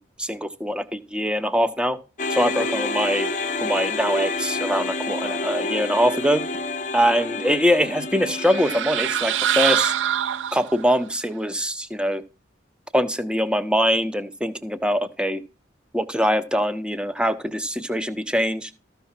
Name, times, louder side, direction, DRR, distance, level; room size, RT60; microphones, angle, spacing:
voice 1, 0.0-2.0 2.3-3.3 3.6-6.5 6.9-9.9 10.5-12.2 12.9-15.4 15.9-18.7, equal, 5° right, 11 dB, 0.8 m, -23 dB
sound 1, 2.2-10.5, left 3 dB, 40° left, 0.8 m, -29 dB
sound 2, 8.3-11.0, right 11 dB, 80° right, 0.4 m, -24 dB
14.0 x 5.8 x 4.4 m, 0.32 s
head